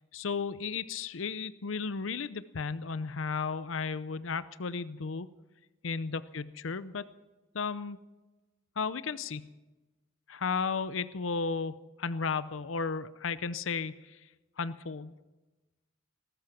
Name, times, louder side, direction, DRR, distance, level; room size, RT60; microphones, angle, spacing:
voice 1, 0.1-5.3 5.8-7.0 7.5-8.0 8.8-9.4 10.3-13.9 14.6-15.1, left 5 dB, 85° left, 15 dB, 0.7 m, -34 dB
19.0 x 13.0 x 5.9 m, 1.1 s
head